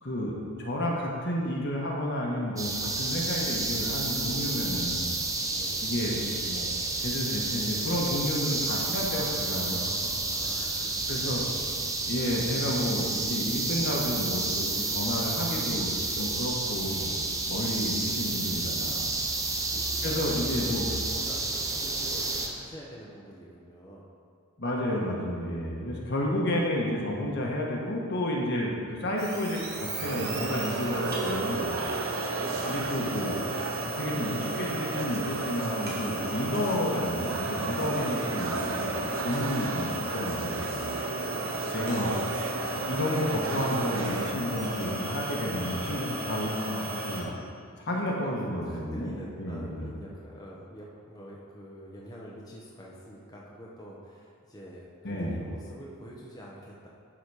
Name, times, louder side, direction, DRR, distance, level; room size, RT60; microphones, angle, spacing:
voice 1, 0.0-5.2 5.8-10.1 11.1-11.4 12.0-17.2 17.5-19.1 20.0-20.9 24.6-31.7 32.7-33.4 33.8-39.0 39.2-40.8 41.7-42.3 42.9-47.3 47.8-49.1 49.4-49.9 55.0-55.4, left 1 dB, 55° left, -2 dB, 1.3 m, -31 dB
sound 1, 2.6-22.5, right 3 dB, 15° right, 0.6 m, -30 dB
voice 2, 5.5-5.9 10.2-11.9 19.7-20.4 20.8-24.1 32.2-33.0 37.9-38.5 47.9-56.9, equal, 20° left, -5 dB, 0.8 m, -46 dB
sound 2, 29.2-47.2, right 2 dB, 50° right, 1.5 m, -35 dB
sound 3, 30.0-44.3, right 4 dB, 75° right, 0.6 m, -34 dB
11.5 x 4.1 x 4.8 m, 2.2 s
head